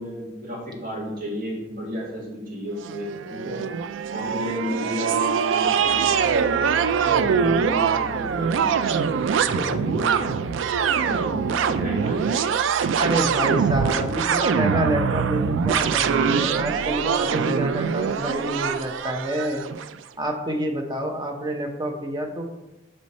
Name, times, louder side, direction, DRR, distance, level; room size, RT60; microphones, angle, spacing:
voice 1, 0.0-3.6 4.1-6.3 6.6-8.8 9.4-10.5 10.9-12.6 13.9-14.1 17.8-18.0, equal, 50° right, -6 dB, 2.1 m, -32 dB
sound 1, 2.8-19.9, right 7 dB, 90° right, 0.3 m, -23 dB
voice 2, 13.0-19.6 20.2-22.4, right 1 dB, 25° right, 2 dB, 0.8 m, -27 dB
6.2 x 4.3 x 4.2 m, 0.99 s
head